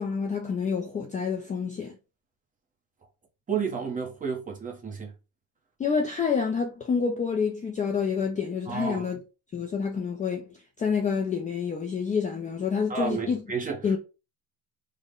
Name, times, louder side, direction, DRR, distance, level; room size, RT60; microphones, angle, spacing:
voice 1, 0.0-1.9 5.8-9.2 9.5-13.4 13.8-14.0, left 6 dB, 20° left, 0.4 m, -28 dB
voice 2, 3.5-5.1 8.7-9.1 12.9-13.8, right 6 dB, 20° right, 0.9 m, -31 dB
3.6 x 2.2 x 3.6 m
cardioid pair, 145°, 39 cm